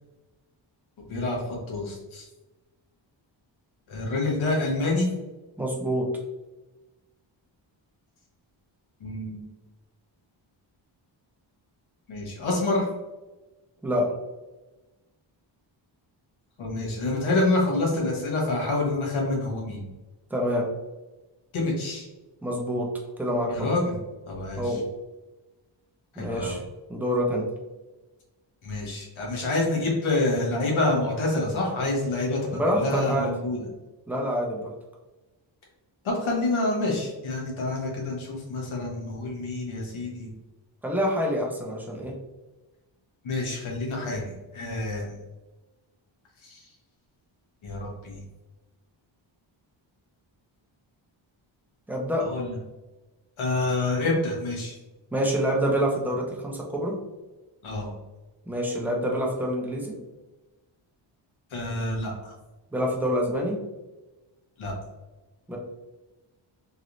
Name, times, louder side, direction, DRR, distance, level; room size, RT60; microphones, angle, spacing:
voice 1, 1.1-2.3 3.9-5.1 9.0-9.4 12.1-12.9 16.6-19.9 21.5-22.1 23.5-24.0 24.3-24.8 26.1-26.6 28.6-33.7 36.0-40.3 43.2-45.2 46.4-46.7 47.6-48.2 52.2-52.5 53.4-54.8 57.6-57.9 61.5-62.3 64.6-64.7, left 2 dB, 80° left, -2 dB, 1.1 m, -27 dB
voice 2, 5.6-6.1 13.8-14.1 20.3-20.7 22.4-22.9 23.2-23.7 24.6-24.8 26.2-26.6 26.9-27.4 32.5-33.3 34.1-34.7 40.8-42.1 51.9-52.3 55.1-57.0 58.5-60.0 62.7-63.6 65.5-65.6, equal, 5° right, -1 dB, 0.5 m, -26 dB
3.1 x 3.0 x 2.5 m, 1.1 s
wide cardioid pair, 160°, 47 cm